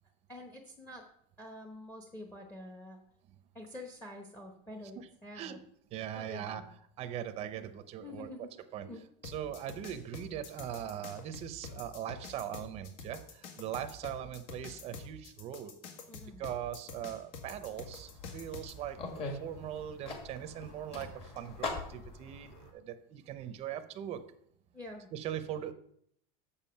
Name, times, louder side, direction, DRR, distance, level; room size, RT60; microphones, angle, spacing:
voice 1, 0.3-1.1 1.4-3.0 3.5-5.6 6.1-6.7 7.6-7.7 8.0-8.5 8.8-9.0 16.1-16.4 24.7-25.1, left 1 dB, 10° left, 2 dB, 0.9 m, -47 dB
voice 2, 5.9-6.6 7.0-8.5 8.7-8.9 9.2-15.7 16.4-24.2 25.1-25.7, right 10 dB, 30° right, 9 dB, 0.7 m, -40 dB
sound 1, 9.2-18.7, left 4 dB, 65° left, 1.9 m, -46 dB
sound 2, 17.4-22.7, left 3 dB, 30° left, 1.7 m, -43 dB
7.2 x 6.9 x 5.6 m, 0.67 s
cardioid pair, 165°, 19 cm